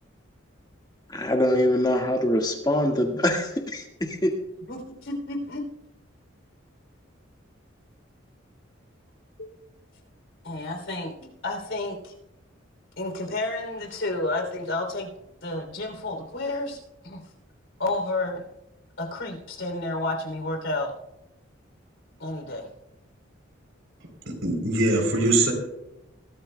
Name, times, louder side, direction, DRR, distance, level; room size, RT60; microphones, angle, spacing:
voice 1, 1.1-4.3, left 1 dB, 20° left, 1.7 m, -24 dB
voice 2, 4.7-5.6 10.4-12.1 13.0-15.1 15.4-16.8 17.0-17.2 17.8-18.4 19.0-20.9 22.2-22.7, left 2 dB, 75° left, 3.2 m, -30 dB
voice 3, 24.3-25.5, right 2 dB, 80° right, 3.6 m, -22 dB
22.0 x 13.5 x 2.3 m
head